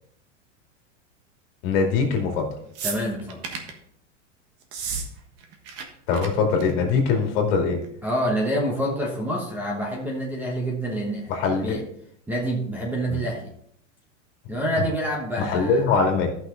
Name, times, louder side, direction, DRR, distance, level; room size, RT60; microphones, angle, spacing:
voice 1, 1.6-2.5 6.1-7.8 11.3-11.8 13.1-13.2 15.4-16.3, left 5 dB, 50° left, 2 dB, 2.5 m, -22 dB
sound 1, 2.7-3.8 4.6-5.1 5.3-5.8 6.1-6.3 6.6-6.9 7.8-7.9, right 5 dB, 40° right, 1.4 m, -32 dB
voice 2, 2.8-3.4 8.0-11.8 12.3-13.5 14.5-15.8, right 1 dB, 5° right, -2 dB, 1.0 m, -27 dB
13.5 x 5.9 x 3.8 m, 0.70 s
supercardioid pair, 160°, 37 cm